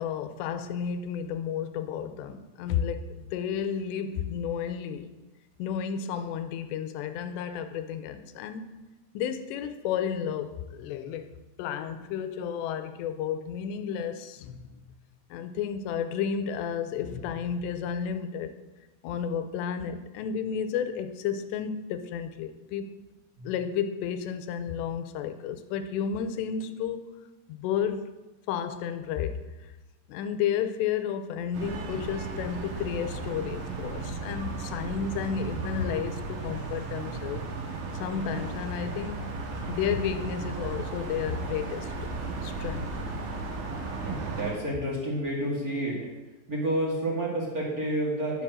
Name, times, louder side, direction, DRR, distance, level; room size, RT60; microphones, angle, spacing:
voice 1, 0.0-5.1 5.6-8.7 9.1-11.3 11.6-14.8 15.3-18.5 19.0-22.9 23.4-27.0 27.5-28.1 28.5-29.7 30.1-37.4 38.0-39.2 39.7-41.9 42.4-42.9, left 8 dB, 90° left, 9 dB, 2.9 m, -32 dB
sound 1, 31.5-44.5, right 3 dB, 60° right, 2.8 m, -35 dB
voice 2, 44.0-46.0 46.5-48.4, right 1 dB, 30° right, -4 dB, 2.1 m, -30 dB
10.0 x 7.7 x 6.2 m, 1.1 s
omnidirectional pair, 4.9 m